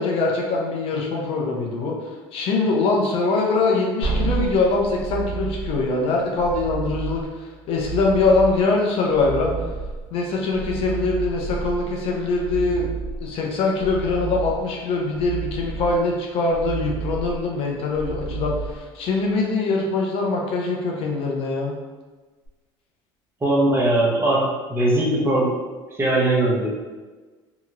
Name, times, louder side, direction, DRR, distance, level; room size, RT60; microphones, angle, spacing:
voice 1, 0.0-9.5 10.1-12.9 13.2-21.7, left 3 dB, 60° left, -1 dB, 0.6 m, -23 dB
sound 1, 4.0-19.3 22.5-22.6, right 4 dB, 80° left, 1.2 m, -31 dB
voice 2, 23.4-24.4 24.7-25.5 26.0-26.7, right 1 dB, 20° right, -5 dB, 0.9 m, -19 dB
2.9 x 2.8 x 2.5 m, 1.3 s
supercardioid pair, 95°, 11 cm